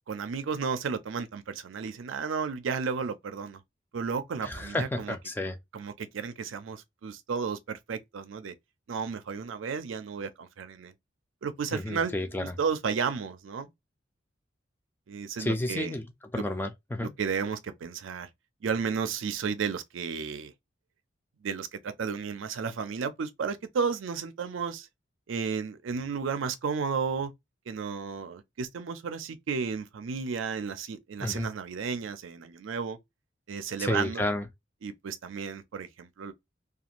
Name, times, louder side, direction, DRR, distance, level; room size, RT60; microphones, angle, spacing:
voice 1, 0.1-3.6 3.9-5.2 5.7-8.5 8.9-10.9 11.4-12.1 12.4-13.7 15.1-15.9 17.0-18.3 18.6-20.5 21.4-24.9 25.3-27.3 27.7-33.0 33.5-34.2 34.8-36.3, right 5 dB, 90° right, 0.4 m, -33 dB
voice 2, 4.4-5.6 11.7-12.5 15.4-16.1 16.3-17.1 31.2-31.5 33.8-34.5, left 1 dB, 10° left, 0.3 m, -31 dB
2.4 x 2.3 x 2.8 m
head